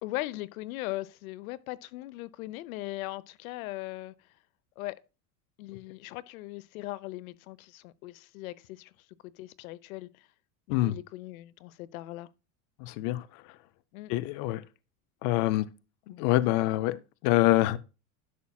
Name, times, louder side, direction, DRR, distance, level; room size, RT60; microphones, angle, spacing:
voice 1, 0.0-4.1 4.8-5.0 5.6-8.9 9.2-10.3 10.7-12.3 13.9-14.1, left 18 dB, 85° left, 0.8 m, -39 dB
voice 2, 12.8-13.4 14.1-14.6 15.2-15.7 16.1-17.8, left 16 dB, 35° left, 0.4 m, -26 dB
11.0 x 7.1 x 2.3 m
supercardioid pair, 170°, 41 cm